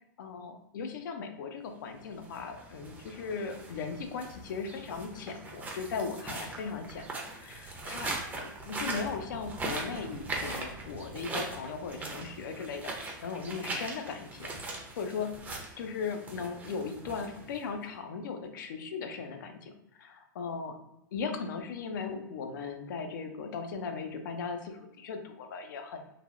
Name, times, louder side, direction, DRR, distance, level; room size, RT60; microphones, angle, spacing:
voice 1, 0.2-7.0 7.4-8.1 8.4-15.4 15.8-19.7 20.0-20.8 21.1-26.1, left 5 dB, 70° left, 6 dB, 0.5 m, -38 dB
sound 1, 2.1-17.8, right 2 dB, 15° right, 0.6 m, -40 dB
3.2 x 2.2 x 2.4 m, 0.88 s
hypercardioid pair, 115°, 11 cm